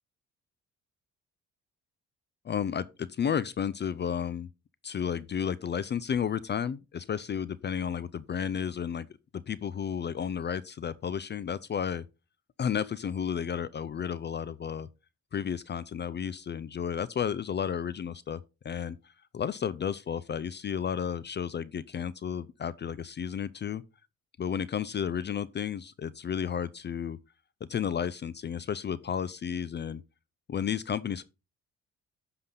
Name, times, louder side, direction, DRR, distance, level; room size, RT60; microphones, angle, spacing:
voice 1, 2.4-4.5 4.8-9.1 9.5-12.0 12.6-14.9 15.3-23.8 24.4-27.2 27.7-30.0 30.5-31.2, left 8 dB, 35° left, 0.5 m, -32 dB
9.7 x 5.8 x 3.8 m
cardioid pair, 90°, 30 cm